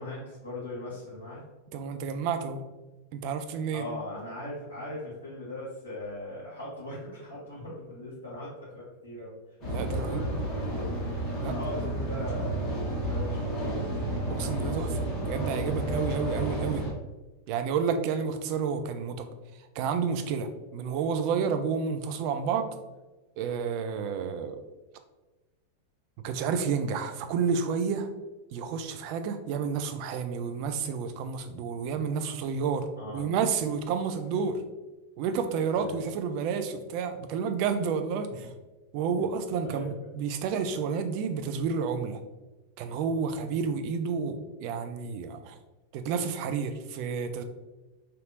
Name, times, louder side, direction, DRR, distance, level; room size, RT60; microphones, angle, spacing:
voice 1, 0.0-1.4 3.7-8.5 8.7-9.3 9.9-10.9 11.5-13.8 16.2-16.5 33.0-33.3 35.7-36.0 38.4-38.5 39.6-40.1, left 1 dB, 75° left, -10 dB, 1.3 m, -40 dB
voice 2, 1.7-2.6 3.1-3.8 9.7-10.3 11.4-11.5 14.3-16.8 17.5-19.3 19.8-22.7 23.4-24.6 26.2-28.1 28.5-32.9 33.1-34.6 35.2-38.5 38.9-42.2 42.8-45.6 45.9-47.4, right 6 dB, 45° right, 8 dB, 0.3 m, -30 dB
sound 1, 9.6-16.9, right 1 dB, 35° left, 1.2 m, -31 dB
3.3 x 2.7 x 2.5 m, 1.1 s
figure-of-eight pair, 90°, 0 cm